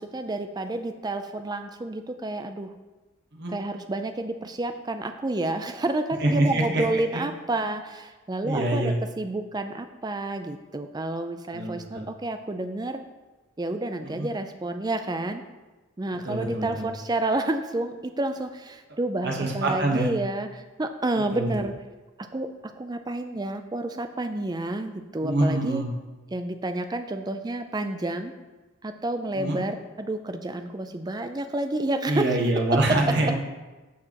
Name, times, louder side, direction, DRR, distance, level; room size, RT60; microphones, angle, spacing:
voice 1, 0.0-2.7 3.5-13.0 13.6-15.4 16.0-21.7 22.2-25.8 26.3-28.3 28.8-32.3, right 2 dB, 20° right, 8 dB, 0.4 m, -30 dB
voice 2, 6.2-7.2 8.4-9.0 11.5-12.1 14.0-14.3 16.2-16.9 19.2-20.1 21.3-21.5 25.2-25.9 29.3-29.6 32.1-33.4, right 1 dB, 50° right, 0 dB, 1.1 m, -25 dB
14.0 x 4.8 x 2.9 m, 1.2 s
head